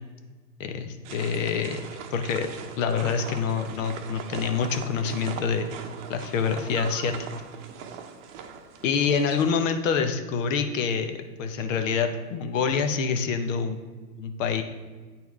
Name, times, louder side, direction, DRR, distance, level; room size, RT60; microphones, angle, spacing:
voice 1, 0.6-1.8 2.1-2.5 2.8-5.7 6.1-7.1 8.8-13.8 14.2-14.6, left 6 dB, 50° left, 7 dB, 0.9 m, -26 dB
sound 1, 1.0-9.5, right 6 dB, 45° right, 0.9 m, -40 dB
8.6 x 4.4 x 3.5 m, 1.4 s
hypercardioid pair, 120°, 49 cm